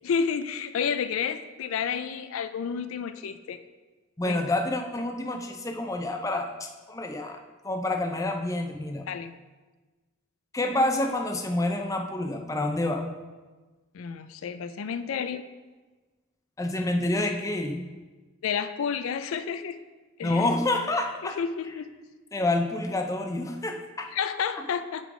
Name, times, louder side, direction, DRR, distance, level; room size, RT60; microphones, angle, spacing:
voice 1, 0.0-3.6 4.3-4.4 9.1-9.3 13.9-15.4 18.4-19.8 20.2-20.5 21.2-21.9 24.1-25.1, left 6 dB, 80° left, 11 dB, 0.4 m, -30 dB
voice 2, 4.2-7.4 7.6-9.1 10.5-13.0 16.6-17.8 20.2-21.4 22.3-24.1, left 2 dB, 15° left, 4 dB, 0.5 m, -28 dB
8.2 x 3.8 x 4.9 m, 1.3 s
head